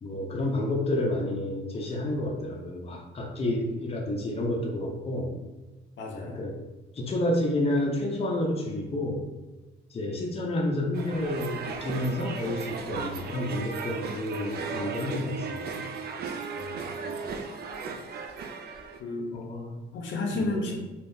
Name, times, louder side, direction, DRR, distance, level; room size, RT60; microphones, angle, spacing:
voice 1, 0.0-5.3 6.3-6.5 6.9-9.3 9.9-15.8 19.3-19.8 20.3-20.5, left 1 dB, 30° left, -1 dB, 0.6 m, -30 dB
voice 2, 6.0-6.4 16.5-17.2 19.0-19.3 19.9-20.8, left 2 dB, 70° left, 0 dB, 0.7 m, -32 dB
sound 1, 10.9-19.0, right 5 dB, 55° right, 0.4 m, -36 dB
3.5 x 2.4 x 2.7 m, 1.1 s
cardioid pair, 90°, 20 cm